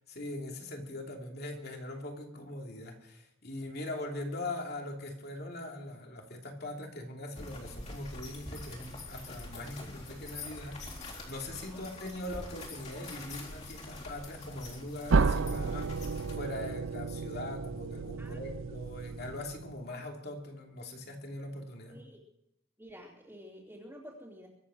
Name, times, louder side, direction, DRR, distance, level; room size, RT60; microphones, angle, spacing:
voice 1, 0.0-16.1 16.4-22.0, left 1 dB, 50° left, 2 dB, 2.9 m, -41 dB
sound 1, 7.4-16.4, left 2 dB, 35° left, 3.9 m, -45 dB
sound 2, 15.1-19.9, right 4 dB, 70° right, 0.5 m, -32 dB
voice 2, 21.9-22.2 22.8-24.5, equal, 10° right, -9 dB, 2.9 m, -50 dB
23.5 x 8.6 x 6.4 m, 0.83 s
head